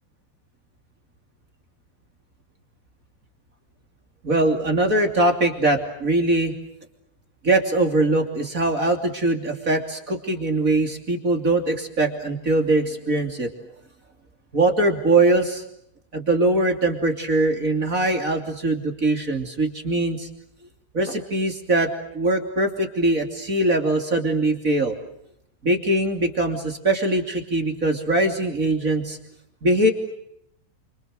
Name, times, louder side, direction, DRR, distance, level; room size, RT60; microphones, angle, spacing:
voice 1, 4.2-6.5 7.4-13.5 14.5-15.6 16.1-20.3 20.9-25.0 25.6-29.2 29.6-29.9, right 2 dB, 25° right, 5 dB, 2.3 m, -22 dB
30.0 x 28.0 x 6.6 m, 0.74 s
omnidirectional pair, 5.5 m